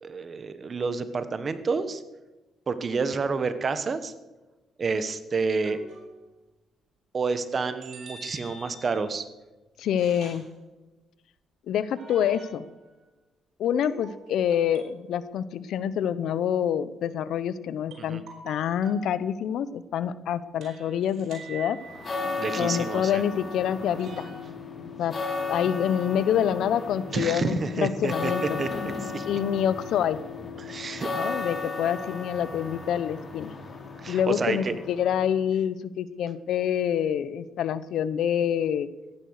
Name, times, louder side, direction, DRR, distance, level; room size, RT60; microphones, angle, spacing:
voice 1, 0.0-2.0 2.7-4.1 4.8-5.8 7.1-9.3 18.0-18.2 22.4-23.2 27.1-29.3 30.6-31.1 34.0-34.7, right 4 dB, 40° right, 12 dB, 1.3 m, -29 dB
sound 1, 5.6-6.3 7.8-9.2 10.0-10.5 12.0-12.8 13.8-15.1 17.9-19.1 20.6-22.3 24.0-24.4, right 3 dB, 70° right, 4.7 m, -46 dB
voice 2, 9.8-10.4 11.7-12.6 13.6-21.8 22.6-24.3 25.0-25.2 25.5-28.6 29.2-30.2 31.1-33.5 34.1-38.9, left 9 dB, 75° left, 16 dB, 0.8 m, -27 dB
sound 2, 21.8-35.4, left 4 dB, 40° left, 3.0 m, -35 dB
15.0 x 11.0 x 6.5 m, 1.1 s
cardioid pair, 90°, 0 cm